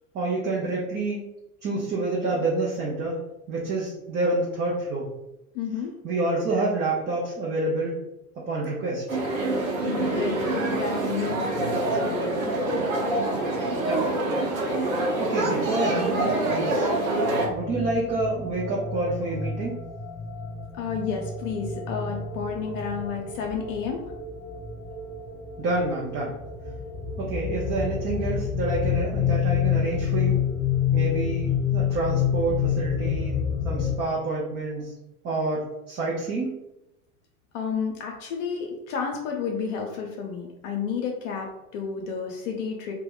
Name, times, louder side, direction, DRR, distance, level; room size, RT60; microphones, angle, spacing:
voice 1, 0.1-1.2 1.6-3.2 3.5-5.1 6.0-8.0 8.5-9.2 13.8-14.0 14.6-14.7 15.2-16.9 17.5-19.7 25.6-26.3 27.2-30.4 30.9-34.9 35.2-36.5, right 2 dB, 25° right, -5 dB, 0.6 m, -28 dB
voice 2, 5.5-6.0 9.8-12.5 20.7-24.1 37.5-42.9, left 6 dB, 55° left, 1 dB, 0.6 m, -31 dB
sound 1, 9.1-17.5, right 2 dB, 60° right, 0.9 m, -26 dB
sound 2, 17.3-33.9, left 8 dB, ahead, 1.0 m, -28 dB
2.2 x 2.2 x 3.6 m, 0.92 s
hypercardioid pair, 85°, 45 cm